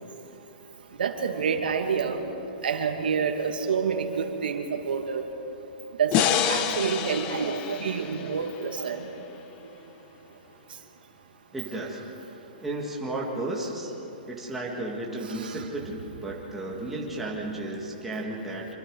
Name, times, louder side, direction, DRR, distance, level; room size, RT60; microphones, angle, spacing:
voice 1, 1.0-2.2 2.6-5.2 6.0-9.0 15.3-15.6, right 6 dB, 80° right, 5 dB, 2.3 m, -28 dB
sound 1, 6.1-9.3, left 9 dB, 20° left, 0.8 m, -28 dB
voice 2, 11.5-12.0 12.6-13.9 14.3-18.7, right 2 dB, 5° right, -3 dB, 2.0 m, -33 dB
25.5 x 25.5 x 4.9 m, 3.0 s
hypercardioid pair, 170°, 5 cm